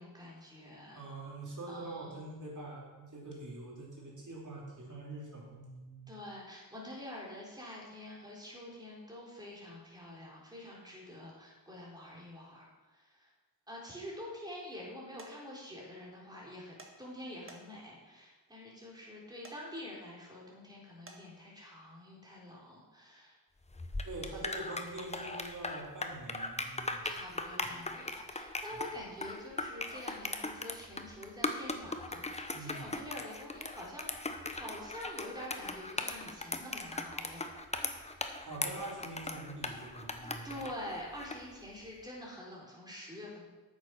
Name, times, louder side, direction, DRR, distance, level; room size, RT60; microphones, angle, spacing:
voice 1, 0.0-1.0 1.7-2.1 6.1-13.3 13.7-23.4 24.4-24.5 27.0-37.5 40.4-43.5, left 1 dB, 10° right, -4 dB, 4.0 m, -46 dB
voice 2, 0.9-6.1 24.0-27.1 28.7-28.8 32.5-32.9 38.4-40.6, right 2 dB, 50° right, -3 dB, 3.4 m, -44 dB
sound 1, 15.2-15.3 16.8-16.9 17.5-17.9 19.4-19.6 21.1-21.2, right 3 dB, 35° right, 1.6 m, -51 dB
sound 2, 23.7-41.5, left 2 dB, 15° left, 0.9 m, -39 dB
8.9 x 7.4 x 6.0 m, 1.2 s
wide cardioid pair, 85°, 38 cm